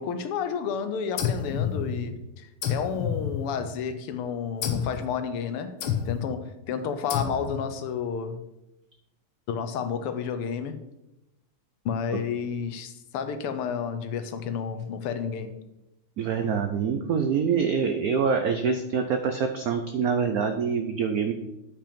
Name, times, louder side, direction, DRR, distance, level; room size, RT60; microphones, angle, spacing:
voice 1, 0.0-5.8 6.1-8.4 9.5-10.8 11.9-15.6, left 7 dB, 90° left, 1.8 m, -31 dB
sound 1, 1.2-2.2 2.6-3.9 4.6-5.0 5.8-6.4 7.1-7.7, left 8 dB, 75° left, 1.7 m, -30 dB
voice 2, 16.2-21.3, right 6 dB, 90° right, 0.8 m, -25 dB
8.6 x 5.8 x 5.1 m
omnidirectional pair, 2.4 m